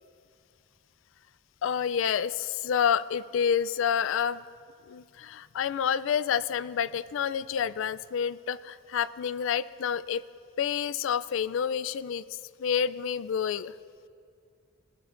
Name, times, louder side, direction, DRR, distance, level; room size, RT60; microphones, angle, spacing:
voice 1, 1.6-4.4 4.9-10.2 10.6-12.2 12.6-13.7, left 8 dB, 65° left, 16 dB, 0.3 m, -28 dB
18.5 x 15.5 x 2.5 m, 2.3 s
head